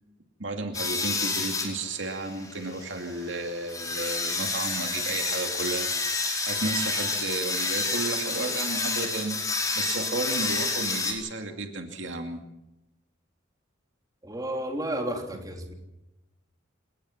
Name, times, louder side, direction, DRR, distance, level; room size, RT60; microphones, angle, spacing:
voice 1, 0.4-9.4 9.7-12.4, right 2 dB, 70° right, 4 dB, 2.5 m, -33 dB
sound 1, 0.7-11.1, left 3 dB, 20° left, 4.8 m, -29 dB
voice 2, 14.2-15.7, right 1 dB, 20° right, 2 dB, 3.4 m, -32 dB
28.5 x 18.5 x 5.8 m, 0.92 s
head